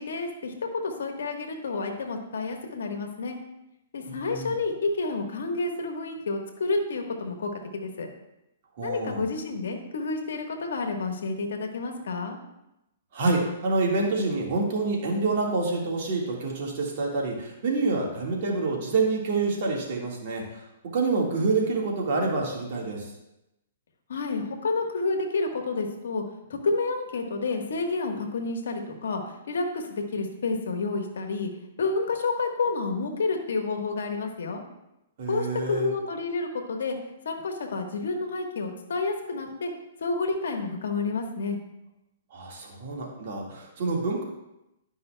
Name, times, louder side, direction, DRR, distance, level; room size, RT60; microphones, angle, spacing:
voice 1, 0.0-3.4 3.9-8.1 8.8-12.4 24.1-26.2 26.5-31.5 31.8-34.6 35.3-39.7 40.0-41.6, left 3 dB, 75° left, 4 dB, 1.2 m, -29 dB
voice 2, 4.1-4.5 8.8-9.2 13.1-20.4 20.9-23.1 35.2-35.9 42.3-44.2, right 3 dB, 55° right, -1 dB, 1.6 m, -27 dB
11.0 x 5.5 x 2.2 m, 0.90 s
hypercardioid pair, 140°, 0 cm